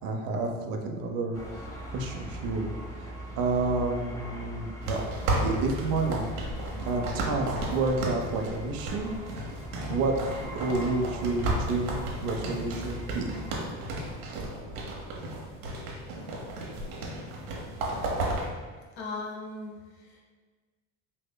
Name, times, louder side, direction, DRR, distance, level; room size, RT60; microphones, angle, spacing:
voice 1, 0.0-5.0 5.4-6.2 6.8-9.1 9.9-13.3, right 3 dB, 50° right, 2 dB, 0.7 m, -30 dB
sound 1, 1.3-13.6, right 1 dB, 5° left, 0.8 m, -40 dB
sound 2, 4.8-18.5, right 1 dB, 75° right, 1.0 m, -34 dB
voice 2, 19.0-20.2, left 3 dB, 65° left, -1 dB, 1.2 m, -38 dB
5.3 x 2.9 x 2.2 m, 1.4 s
hypercardioid pair, 70°, 44 cm